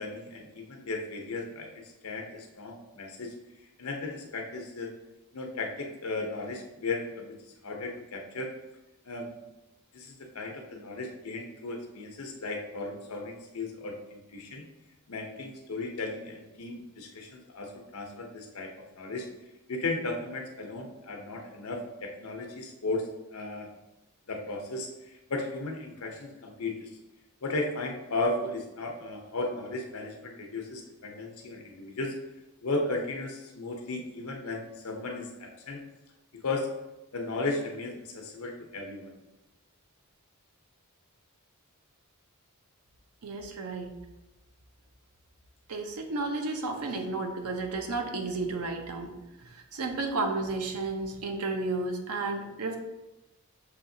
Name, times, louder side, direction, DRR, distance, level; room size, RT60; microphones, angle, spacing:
voice 1, 0.0-1.7 2.0-3.3 3.8-4.9 5.3-7.3 7.6-8.5 9.1-9.3 9.9-14.6 15.1-19.3 19.7-23.0 23.3-23.7 24.3-24.9 25.3-26.9 27.4-32.1 32.6-35.8 36.4-36.7 37.1-39.2, left 2 dB, 70° left, 2 dB, 0.8 m, -35 dB
voice 2, 43.2-43.9 45.7-49.1 49.4-52.8, right 3 dB, 85° right, 4 dB, 0.7 m, -32 dB
6.5 x 2.8 x 2.7 m, 0.98 s
head